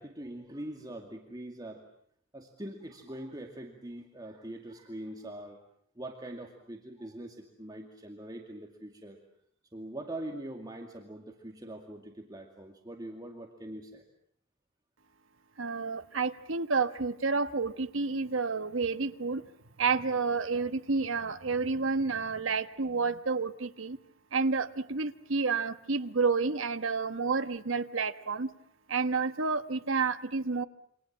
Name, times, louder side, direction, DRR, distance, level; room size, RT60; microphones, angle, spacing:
voice 1, 0.0-1.8 2.3-5.6 6.0-9.2 9.7-14.0, right 1 dB, 20° right, 2 dB, 2.3 m, -43 dB
voice 2, 15.6-19.4 19.8-24.0 24.3-28.5 28.9-30.6, right 4 dB, 75° right, 9 dB, 1.2 m, -30 dB
28.0 x 25.5 x 7.4 m, 0.67 s
head